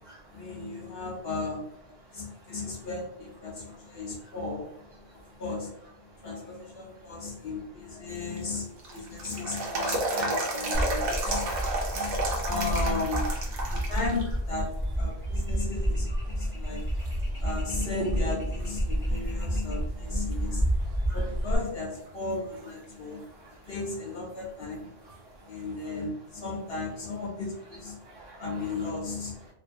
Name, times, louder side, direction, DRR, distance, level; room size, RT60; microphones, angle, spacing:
voice 1, 0.3-1.6 2.1-4.7 5.4-5.7 6.2-11.5 11.9-13.2 13.7-14.7 15.0-16.8 17.4-20.6 21.1-23.2 23.7-24.9 25.5-28.0 28.4-29.3, left 3 dB, 65° left, -2 dB, 0.8 m, -35 dB
sound 1, 8.1-14.2 14.6-14.7 15.5-16.0 16.5-16.6 17.1-18.3 18.6-18.7 22.1-22.2 25.1-25.2, right 2 dB, 90° right, 1.0 m, -32 dB
sound 2, 10.7-21.6, equal, 20° right, 0.8 m, -30 dB
voice 2, 16.1-16.4 16.9-17.1 18.9-19.6 20.4-20.6 20.9-21.2 23.0-23.7 25.0-25.1 25.4-25.6 28.0-28.9, right 2 dB, 65° right, -3 dB, 0.7 m, -51 dB
2.5 x 2.3 x 2.5 m, 0.81 s
omnidirectional pair, 1.2 m